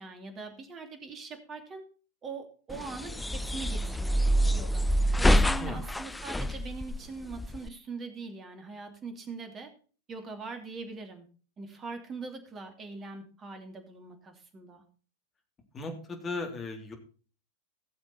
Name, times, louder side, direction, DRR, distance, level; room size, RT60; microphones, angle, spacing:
voice 1, 0.0-1.8 2.2-4.2 4.5-4.8 5.2-9.7 10.1-11.3 11.6-14.8, right 4 dB, 25° right, 6 dB, 2.8 m, -42 dB
sound 1, 2.7-7.7, equal, 5° left, 0.5 m, -27 dB
voice 2, 15.7-16.9, left 3 dB, 20° left, 3 dB, 3.3 m, -36 dB
17.5 x 7.2 x 4.1 m, 0.38 s
figure-of-eight pair, 90°, 0 cm